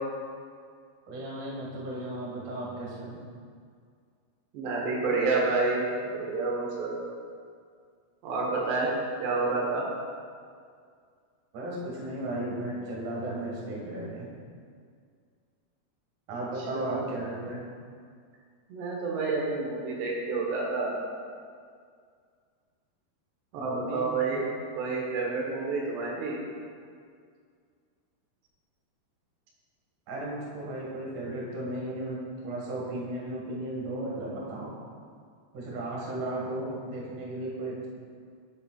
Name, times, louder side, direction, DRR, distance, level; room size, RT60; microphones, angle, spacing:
voice 1, 1.1-3.2 11.5-14.3 16.3-17.6 23.6-24.1 30.1-32.2 32.4-34.7 35.5-37.9, right 1 dB, 60° right, -5 dB, 2.8 m, -35 dB
voice 2, 4.5-7.0 8.2-8.9 9.2-9.8 16.7-17.1 18.7-20.9 23.5-24.4 24.8-26.4, right 3 dB, 90° right, -3 dB, 3.3 m, -29 dB
11.5 x 7.0 x 2.4 m, 2.1 s
omnidirectional pair, 4.7 m